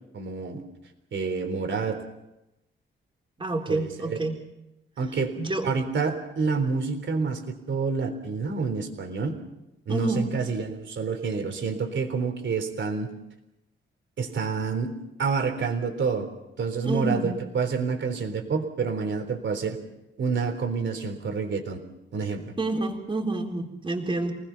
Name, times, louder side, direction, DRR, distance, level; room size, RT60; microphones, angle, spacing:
voice 1, 0.1-0.6 1.1-2.0 3.7-4.2 5.0-5.4 5.6-9.4 9.9-13.1 14.2-16.3 16.6-19.8 20.2-21.8 22.1-22.5, right 5 dB, 65° right, 6 dB, 3.8 m, -28 dB
voice 2, 3.4-4.4 5.4-5.6 9.9-10.3 16.8-17.3 22.6-24.3, right 2 dB, 25° right, 2 dB, 3.9 m, -28 dB
29.0 x 19.5 x 5.8 m, 0.93 s
wide cardioid pair, 130°, 21 cm